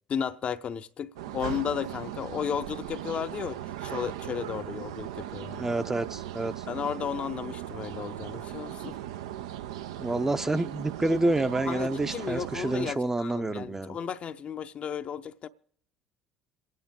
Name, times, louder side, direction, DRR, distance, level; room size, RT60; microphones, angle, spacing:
voice 1, 0.1-5.7 6.7-9.0 11.7-15.5, left 8 dB, 45° left, 0.6 m, -34 dB
sound 1, 1.2-12.9, right 12 dB, 80° right, 0.5 m, -38 dB
voice 2, 5.6-6.6 10.0-14.0, right 2 dB, 15° right, 0.6 m, -28 dB
27.5 x 9.4 x 3.7 m
hypercardioid pair, 65°, 3 cm